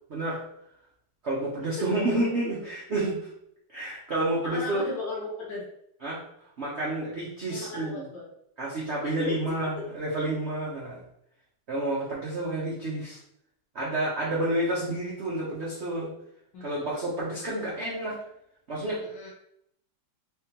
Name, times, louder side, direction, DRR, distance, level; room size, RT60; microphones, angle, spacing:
voice 1, 0.1-0.4 1.2-3.2 3.7-4.8 6.0-6.2 6.6-8.0 8.6-11.0 11.7-13.2 13.7-16.1 16.6-18.2 18.7-19.0, right 1 dB, 60° right, -5 dB, 0.7 m, -29 dB
voice 2, 4.4-5.6 7.5-8.3 9.0-9.4 9.8-9.9 16.5-16.9 19.0-19.3, left 2 dB, 65° left, -3 dB, 1.3 m, -36 dB
3.7 x 3.6 x 2.9 m, 0.75 s
omnidirectional pair, 2.3 m